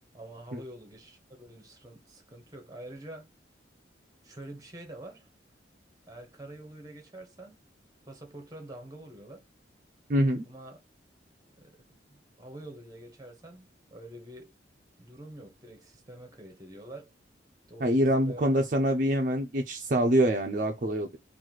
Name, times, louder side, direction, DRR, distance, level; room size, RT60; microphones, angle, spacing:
voice 1, 0.1-3.3 4.2-5.3 6.1-7.6 8.1-9.4 10.5-10.8 11.6-11.8 12.1-14.5 15.0-17.1 17.7-18.5, right 1 dB, 20° right, 1.0 m, -46 dB
voice 2, 10.1-10.4 17.8-21.2, right 1 dB, 45° right, 0.6 m, -25 dB
3.1 x 2.6 x 3.9 m
head